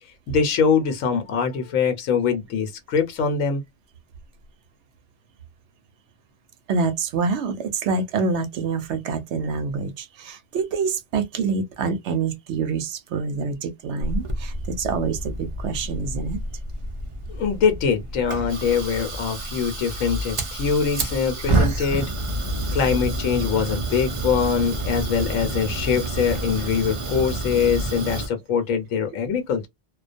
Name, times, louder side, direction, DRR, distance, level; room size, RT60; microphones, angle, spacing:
voice 1, 0.3-3.6 17.3-22.1 22.7-29.7, left 6 dB, 85° left, 1.1 m, -23 dB
voice 2, 6.7-16.4, right 5 dB, 70° right, 0.8 m, -26 dB
Fire, 14.0-28.3, right 1 dB, 50° right, 0.4 m, -28 dB
2.3 x 2.2 x 2.5 m
omnidirectional pair, 1.3 m